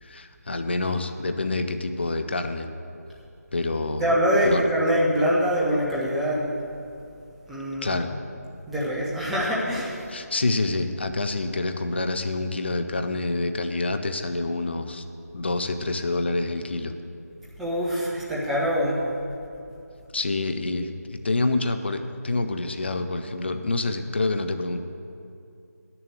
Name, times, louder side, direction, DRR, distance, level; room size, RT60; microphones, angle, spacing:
voice 1, 0.0-2.7 3.5-4.1 4.4-4.7 7.8-8.1 10.1-15.0 15.3-16.9 20.1-24.8, left 2 dB, 40° left, 7 dB, 0.7 m, -27 dB
voice 2, 4.0-6.5 7.5-8.0 8.7-10.0 17.6-19.0, equal, ahead, -7 dB, 0.7 m, -24 dB
10.5 x 6.9 x 7.9 m, 2.6 s
figure-of-eight pair, 160°, 9 cm